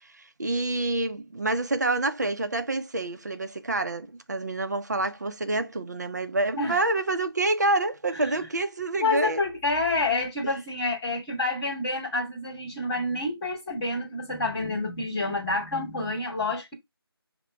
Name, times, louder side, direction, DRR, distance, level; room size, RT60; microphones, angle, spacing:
voice 1, 0.0-9.4 10.4-10.5, right 2 dB, 45° right, 0.5 m, -27 dB
voice 2, 9.0-16.7, left 2 dB, 5° left, 0.8 m, -28 dB
5.6 x 2.1 x 3.1 m
figure-of-eight pair, 170°, 13 cm